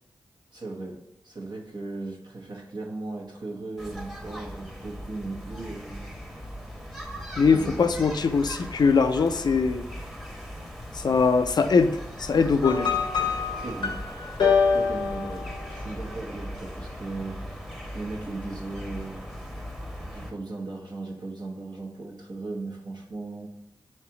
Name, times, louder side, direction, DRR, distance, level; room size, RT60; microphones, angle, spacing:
voice 1, 0.5-6.1 7.5-8.1 13.6-14.0 14.7-17.7 17.9-19.6 20.1-23.5, right 2 dB, 60° right, 0 dB, 1.0 m, -37 dB
sound 1, 3.8-20.3, equal, 5° right, 0.9 m, -39 dB
voice 2, 7.4-9.8 10.9-12.9, left 5 dB, 60° left, 9 dB, 0.4 m, -22 dB
sound 2, 12.6-16.0, left 5 dB, 85° left, 0.8 m, -26 dB
3.2 x 2.9 x 4.6 m, 0.82 s
cardioid pair, 45°, 8 cm